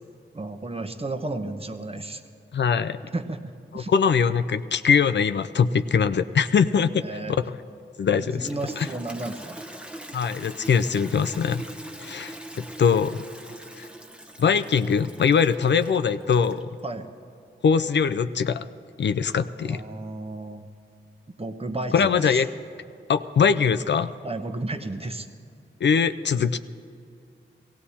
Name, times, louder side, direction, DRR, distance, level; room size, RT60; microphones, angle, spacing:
voice 1, 0.3-2.2 3.1-3.9 7.0-7.4 8.4-9.6 16.8-17.1 19.6-20.7 21.3-22.4 24.2-25.3, right 2 dB, 30° right, 7 dB, 1.0 m, -33 dB
voice 2, 2.5-3.0 3.7-7.0 8.0-8.5 8.8-8.9 10.1-11.6 12.0-13.2 13.7-13.9 14.4-16.7 17.6-18.7 19.0-19.8 21.9-22.5 23.1-24.1 25.8-26.6, left 6 dB, 60° left, 10 dB, 0.5 m, -22 dB
Toilet flush, 8.2-16.8, right 1 dB, 5° right, 1.0 m, -42 dB
17.0 x 16.5 x 4.3 m, 2.5 s
cardioid pair, 60°, 21 cm